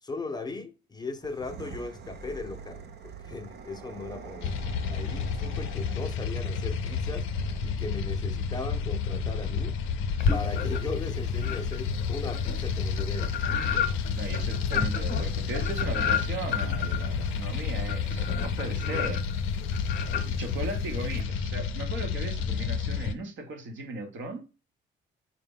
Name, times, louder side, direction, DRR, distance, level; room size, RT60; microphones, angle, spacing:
voice 1, 0.0-4.5 4.9-9.8 10.3-13.3, left 3 dB, 20° left, 0.5 m, -38 dB
sound 1, 1.2-7.9, right 6 dB, 55° right, 0.5 m, -44 dB
sound 2, 4.4-23.1, left 5 dB, 80° left, 0.4 m, -30 dB
sound 3, 10.2-11.0 11.4-21.2, left 7 dB, 50° left, 0.8 m, -32 dB
voice 2, 14.1-19.2 20.3-24.5, right 2 dB, 75° right, 0.9 m, -37 dB
4.0 x 2.2 x 3.6 m
cardioid pair, 90°, 20 cm